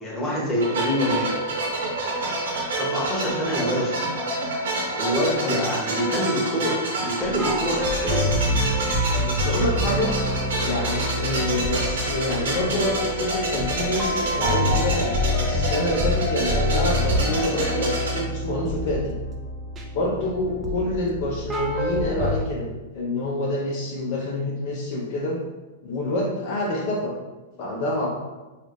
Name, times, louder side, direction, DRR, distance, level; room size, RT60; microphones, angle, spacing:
voice 1, 0.0-1.3 2.8-4.0 5.0-8.3, equal, 10° left, -4 dB, 1.1 m, -26 dB
sound 1, 0.6-18.2, right 1 dB, 60° right, 0.9 m, -28 dB
sound 2, 7.2-22.4, left 1 dB, 20° right, 0.5 m, -27 dB
voice 2, 9.2-10.1 10.6-15.1 15.4-19.2 19.9-25.4 25.8-27.1 27.6-28.1, left 1 dB, 45° left, -2 dB, 0.6 m, -27 dB
3.9 x 2.4 x 3.2 m, 1.1 s
figure-of-eight pair, 100°, 0 cm